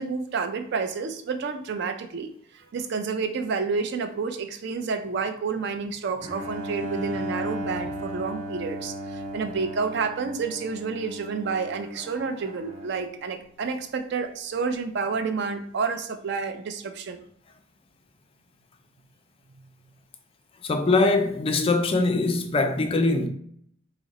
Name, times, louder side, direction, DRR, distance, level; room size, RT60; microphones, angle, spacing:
voice 1, 0.0-17.2, right 5 dB, 55° right, 0.4 m, -30 dB
Bowed string instrument, 6.2-13.2, equal, 70° right, 0.8 m, -36 dB
voice 2, 20.6-23.3, left 3 dB, 25° left, 0.3 m, -22 dB
3.6 x 2.0 x 4.0 m
head